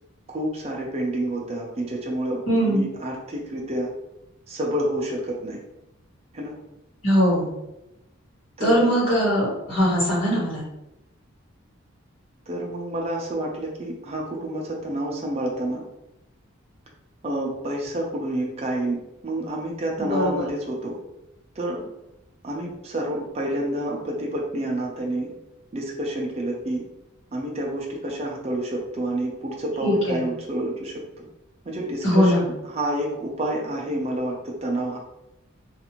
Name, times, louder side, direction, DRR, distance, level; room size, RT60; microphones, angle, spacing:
voice 1, 0.3-3.9 4.5-5.6 6.3-6.5 8.6-8.9 12.5-15.8 17.2-19.0 19.2-20.9 21.6-21.8 22.4-25.3 25.7-26.8 27.3-31.3 31.6-35.0, right 1 dB, 30° right, -2 dB, 0.5 m, -29 dB
voice 2, 2.5-2.9 7.0-7.5 8.6-10.6 20.0-20.4 29.8-30.2 32.0-32.5, equal, 65° left, -7 dB, 1.4 m, -21 dB
2.5 x 2.5 x 2.9 m, 0.90 s
head